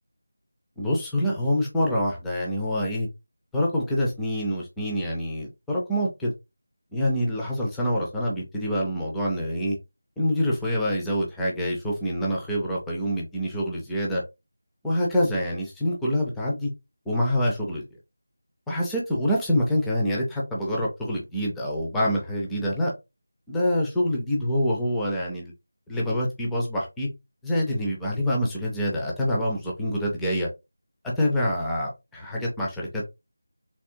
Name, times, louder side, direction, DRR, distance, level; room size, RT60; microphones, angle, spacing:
voice 1, 0.8-3.1 3.5-6.3 6.9-9.8 10.2-14.2 14.8-16.7 17.1-17.8 18.7-22.9 23.5-25.5 25.9-27.1 27.4-30.5 31.2-33.1, equal, 5° left, 0.5 m, -26 dB
3.4 x 2.9 x 2.7 m
figure-of-eight pair, 175°, 0 cm